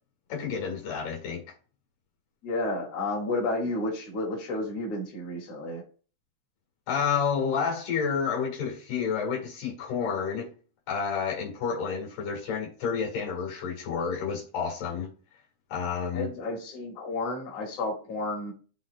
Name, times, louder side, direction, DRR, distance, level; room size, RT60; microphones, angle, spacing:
voice 1, 0.3-1.4 6.9-10.5 10.9-15.1 15.7-16.3, left 6 dB, 90° left, -1 dB, 3.6 m, -30 dB
voice 2, 2.4-5.8 16.1-18.5, left 2 dB, 50° left, -2 dB, 2.9 m, -31 dB
12.5 x 4.2 x 2.4 m, 0.38 s
omnidirectional pair, 3.6 m